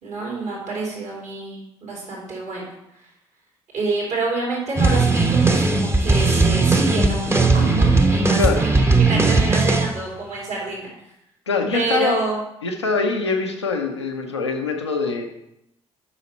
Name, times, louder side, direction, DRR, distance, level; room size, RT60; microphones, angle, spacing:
voice 1, 0.0-2.7 3.0-3.1 3.7-10.9 11.7-12.4, right 3 dB, 60° right, -4 dB, 2.9 m, -28 dB
sound 1, 4.8-9.9, right 3 dB, 20° right, 0.9 m, -17 dB
voice 2, 11.5-12.3 12.6-15.2, left 4 dB, 90° left, 3 dB, 0.7 m, -23 dB
7.1 x 5.7 x 4.2 m, 0.82 s
figure-of-eight pair, 45°, 14 cm